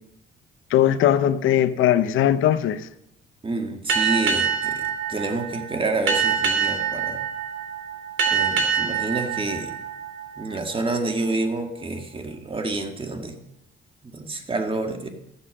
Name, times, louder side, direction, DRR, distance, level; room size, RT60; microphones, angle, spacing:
voice 1, 0.7-2.8, left 11 dB, 85° left, 13 dB, 0.8 m, -19 dB
voice 2, 3.4-7.2 8.3-9.7 10.4-13.4 14.0-15.1, right 2 dB, 25° right, 4 dB, 1.9 m, -28 dB
Boat Water vehicle, 3.9-11.0, right 6 dB, 75° right, 2.3 m, -25 dB
13.5 x 8.1 x 6.4 m, 0.83 s
cardioid pair, 90°, 20 cm